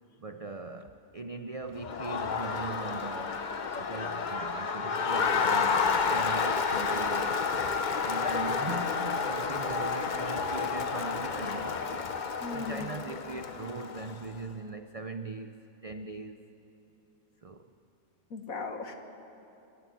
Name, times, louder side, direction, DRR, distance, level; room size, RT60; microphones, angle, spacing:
voice 1, 0.2-3.5 3.8-7.8 8.0-11.9 12.5-16.4 17.4-17.7, right 3 dB, 45° right, 8 dB, 0.4 m, -40 dB
Crowd, 1.8-14.3, left 5 dB, 40° left, 0.7 m, -30 dB
voice 2, 12.4-13.0 18.3-18.9, left 4 dB, 70° left, 5 dB, 2.0 m, -37 dB
27.5 x 13.5 x 9.3 m, 2.9 s
omnidirectional pair, 1.5 m